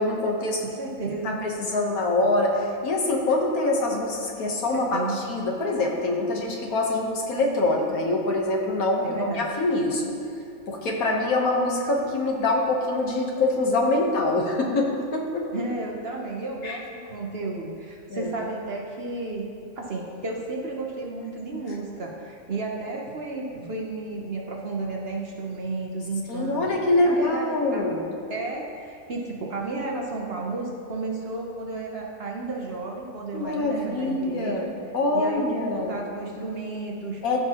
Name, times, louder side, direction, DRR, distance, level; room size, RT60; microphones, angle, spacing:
voice 1, 0.0-0.6 1.2-10.2 10.7-15.5 16.6-16.8 18.1-18.3 26.3-28.0 33.3-34.7 34.9-36.0 37.2-37.4, left 2 dB, 75° left, 0 dB, 1.5 m, -24 dB
voice 2, 0.6-1.4 4.7-5.2 9.0-9.5 15.5-19.5 19.8-26.7 27.0-27.9 28.3-34.7 35.1-37.2, right 3 dB, 50° right, 0 dB, 0.9 m, -33 dB
14.5 x 5.9 x 2.9 m, 2.5 s
omnidirectional pair, 1.5 m